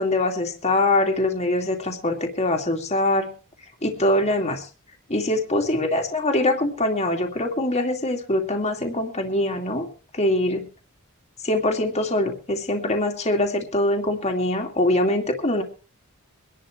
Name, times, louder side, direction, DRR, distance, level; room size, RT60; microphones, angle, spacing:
voice 1, 0.0-3.3 3.8-4.7 5.1-9.9 10.1-10.7 11.4-15.6, left 1 dB, 30° left, 2 dB, 2.5 m, -23 dB
24.0 x 11.5 x 3.3 m, 0.35 s
head